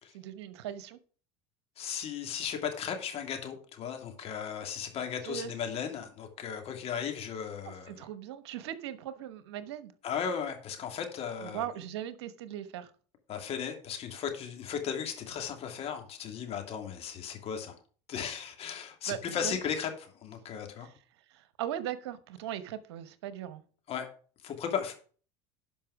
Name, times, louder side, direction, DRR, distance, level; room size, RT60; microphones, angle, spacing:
voice 1, 0.1-1.0 5.2-5.5 7.7-9.9 11.4-12.9 19.1-19.6 20.8-20.9 21.3-23.6, right 11 dB, 80° right, 13 dB, 1.1 m, -39 dB
voice 2, 1.8-8.0 10.0-11.7 13.3-17.7 18.1-20.9 23.9-24.1 24.4-24.9, left 7 dB, 50° left, 4 dB, 2.8 m, -36 dB
11.5 x 5.4 x 4.8 m, 0.41 s
hypercardioid pair, 90°, 14 cm